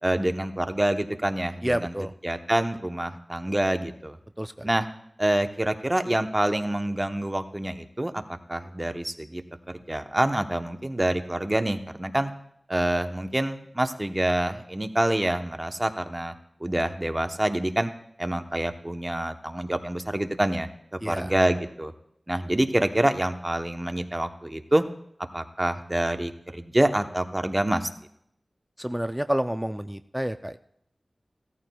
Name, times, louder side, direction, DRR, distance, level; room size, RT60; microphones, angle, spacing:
voice 1, 0.0-1.9 2.2-4.2 4.6-4.9 5.2-9.4 9.7-12.3 12.7-16.3 16.6-17.9 18.2-21.9 22.3-24.8 25.3-27.9, right 1 dB, 25° right, 7 dB, 0.9 m, -26 dB
voice 2, 1.6-2.1 4.4-4.7 21.0-21.3 28.8-30.6, equal, 5° right, 9 dB, 0.4 m, -29 dB
17.0 x 13.5 x 2.3 m, 0.72 s
wide cardioid pair, 50°, 0 cm